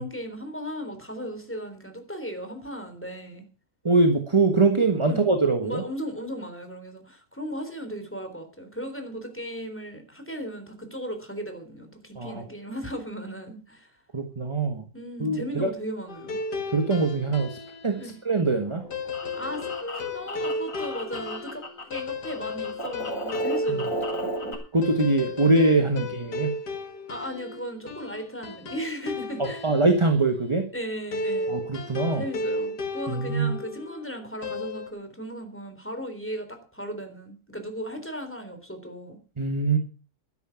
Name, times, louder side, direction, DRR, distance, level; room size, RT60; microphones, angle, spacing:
voice 1, 0.0-3.4 5.1-5.3 5.6-14.0 14.9-16.4 17.9-18.1 19.4-24.3 27.1-29.7 30.7-31.5 32.2-39.2, equal, 5° left, 6 dB, 3.6 m, -36 dB
voice 2, 3.8-5.8 12.2-12.4 14.1-14.8 15.2-15.7 16.7-17.6 17.8-18.8 23.7-23.8 24.7-26.6 29.4-30.7 31.5-32.2 33.1-33.6 39.4-39.8, right 3 dB, 20° right, 6 dB, 1.4 m, -23 dB
sound 1, 16.1-17.9 18.9-30.1 31.1-34.0 34.4-34.9, left 2 dB, 85° left, 2.4 m, -33 dB
sound 2, 18.6-22.0 22.2-24.5, equal, 55° left, 4.5 m, -35 dB
13.0 x 11.0 x 5.9 m, 0.37 s
omnidirectional pair, 1.7 m